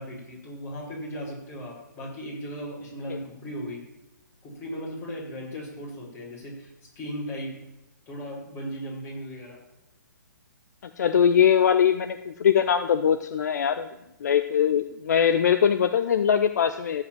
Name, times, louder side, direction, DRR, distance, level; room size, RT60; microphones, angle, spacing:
voice 1, 0.0-3.8 4.4-7.5 8.1-9.6, equal, 20° left, -4 dB, 5.2 m, -37 dB
voice 2, 11.0-13.9 14.2-17.0, left 8 dB, 55° left, 10 dB, 0.6 m, -22 dB
15.5 x 5.4 x 7.4 m, 0.95 s
figure-of-eight pair, 135°, 11 cm